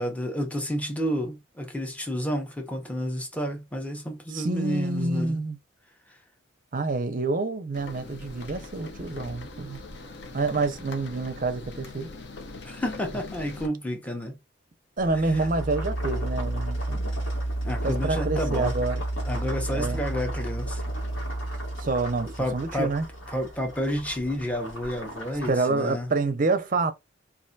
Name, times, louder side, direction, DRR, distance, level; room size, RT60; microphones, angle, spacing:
voice 1, 0.0-5.4 12.6-14.4 15.3-15.5 17.6-18.7 19.3-20.8 22.2-22.9 23.3-26.1, equal, 5° left, 0.6 m, -30 dB
voice 2, 4.3-5.6 6.7-9.8 10.3-12.1 15.0-17.1 17.8-19.0 19.7-20.0 21.8-23.0 25.5-26.9, right 3 dB, 45° right, 0.5 m, -27 dB
sound 1, 7.7-13.7, left 2 dB, 55° left, 0.6 m, -41 dB
sound 2, 15.0-25.6, right 1 dB, 85° left, 1.3 m, -32 dB
3.3 x 2.4 x 2.6 m
head